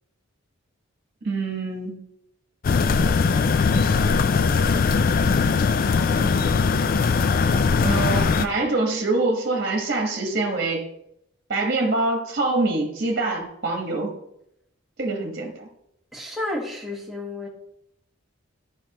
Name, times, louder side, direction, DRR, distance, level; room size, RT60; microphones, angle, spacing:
voice 1, 1.2-2.0 7.8-10.8 11.5-14.1 15.0-15.7, right 2 dB, 45° right, 2 dB, 1.3 m, -25 dB
sound 1, 2.6-8.5, left 5 dB, 45° left, 0.3 m, -20 dB
voice 2, 16.1-17.5, left 2 dB, ahead, -4 dB, 1.4 m, -33 dB
9.9 x 5.2 x 2.9 m, 0.77 s
head